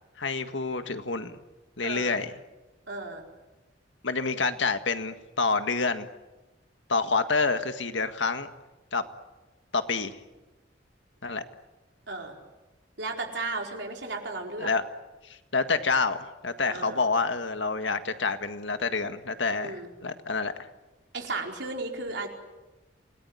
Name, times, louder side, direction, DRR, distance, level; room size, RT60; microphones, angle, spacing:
voice 1, 0.2-1.3 1.8-2.3 4.0-6.1 6.9-8.5 8.9-9.0 9.7-10.2 11.2-11.4 14.6-14.8 15.5-20.5, left 4 dB, 80° left, 8 dB, 1.8 m, -28 dB
voice 2, 1.8-2.2 2.9-3.2 12.1-12.4 13.0-14.7 16.7-17.0 19.6-19.9 21.1-22.3, right 3 dB, 70° right, 2 dB, 4.5 m, -34 dB
27.5 x 19.0 x 9.8 m, 1.1 s
head